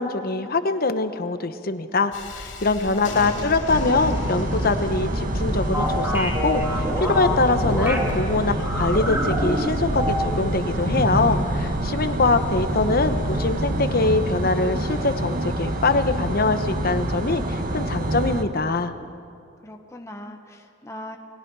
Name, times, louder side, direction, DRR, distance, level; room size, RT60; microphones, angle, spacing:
voice 1, 0.0-18.9, left 3 dB, 50° left, 9 dB, 1.1 m, -23 dB
Thunderstorm, 2.1-13.6, equal, 70° left, 2.9 m, -33 dB
voice 2, 3.1-3.5 19.6-21.2, left 1 dB, 15° left, 3 dB, 1.2 m, -39 dB
sound 1, 3.7-18.4, right 1 dB, 45° right, 1.3 m, -27 dB
sound 2, 5.7-8.1 8.6-10.5 10.8-11.4, equal, 10° right, 2.8 m, -27 dB
30.0 x 20.5 x 4.8 m, 2.4 s
head